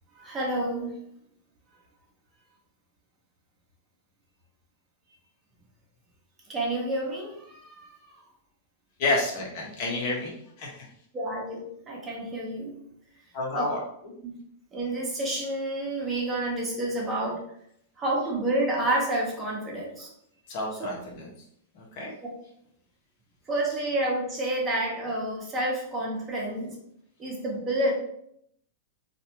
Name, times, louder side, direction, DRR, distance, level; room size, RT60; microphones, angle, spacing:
voice 1, 0.1-0.9 6.5-8.1 11.1-12.7 13.5-13.7 14.2-14.3 14.7-17.4 18.0-20.1 23.5-26.7 27.2-27.9, right 1 dB, 20° right, -2 dB, 1.0 m, -29 dB
voice 2, 9.0-10.9 13.3-13.8 20.5-21.3 21.7-22.1, left 2 dB, 50° left, -2 dB, 1.1 m, -30 dB
3.2 x 2.6 x 2.9 m, 0.71 s
figure-of-eight pair, 100°, 0 cm